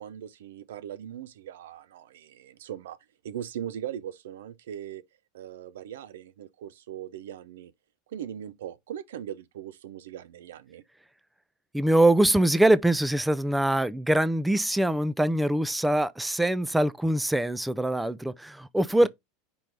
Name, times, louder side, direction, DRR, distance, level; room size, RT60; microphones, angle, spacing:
voice 1, 0.0-3.0 3.2-5.0 5.3-7.7 8.1-10.8 19.0-19.1, right 10 dB, 85° right, 0.4 m, -39 dB
voice 2, 11.7-19.1, right 1 dB, 5° right, 0.3 m, -23 dB
5.2 x 3.1 x 3.3 m
supercardioid pair, 110°, 0 cm